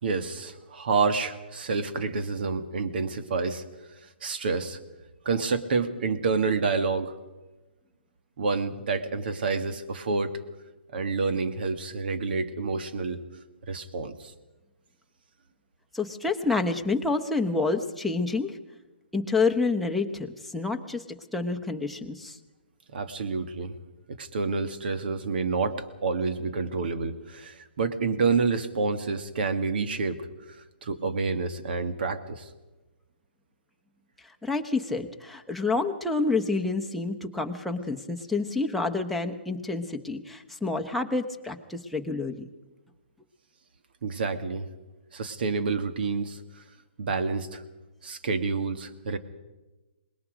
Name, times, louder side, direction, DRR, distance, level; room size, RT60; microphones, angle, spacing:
voice 1, 0.0-3.6 4.2-4.8 5.2-7.1 8.4-10.4 10.9-13.2 13.7-14.3 22.9-23.8 24.1-30.2 30.5-30.6 30.8-32.5 44.0-44.7 45.1-46.6 47.0-47.6 48.0-49.2, right 4 dB, 60° right, 10 dB, 1.8 m, -28 dB
voice 2, 15.9-18.6 19.1-21.0 21.3-22.4 34.4-42.5, left 3 dB, ahead, 1 dB, 1.0 m, -28 dB
24.5 x 20.5 x 5.1 m, 1.1 s
hypercardioid pair, 150°, 6 cm